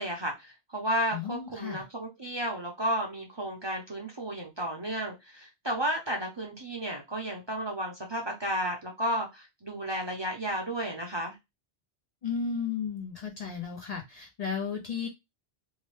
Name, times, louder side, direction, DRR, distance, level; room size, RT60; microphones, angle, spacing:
voice 1, 0.0-11.3, right 1 dB, 35° right, 0.5 m, -33 dB
voice 2, 1.1-1.8 12.2-15.1, left 6 dB, 50° left, 0.5 m, -34 dB
2.7 x 2.1 x 3.1 m
omnidirectional pair, 1.0 m